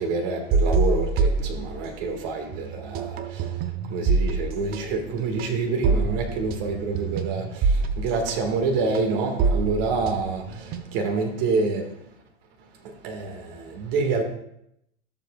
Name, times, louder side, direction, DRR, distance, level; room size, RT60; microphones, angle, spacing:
voice 1, 0.0-11.9 12.8-14.2, right 4 dB, 55° right, 2 dB, 1.9 m, -27 dB
sound 1, 0.5-2.2 2.5-11.2, right 4 dB, 25° right, 0.6 m, -26 dB
13.0 x 7.4 x 2.4 m, 0.77 s
supercardioid pair, 130°, 35 cm